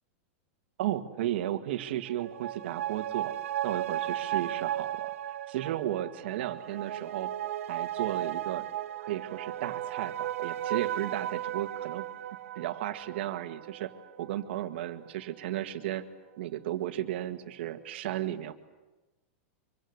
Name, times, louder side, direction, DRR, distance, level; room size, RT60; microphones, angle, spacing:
voice 1, 0.8-3.3 3.6-5.1 5.5-7.3 7.7-8.7 9.1-12.0 12.6-13.9 14.2-16.0 16.4-18.5, right 13 dB, 55° right, 9 dB, 1.9 m, -34 dB
sound 1, 2.1-15.0 15.3-15.4, right 12 dB, 90° right, 1.3 m, -35 dB
25.5 x 24.5 x 8.1 m, 1.1 s
supercardioid pair, 180°, 7 cm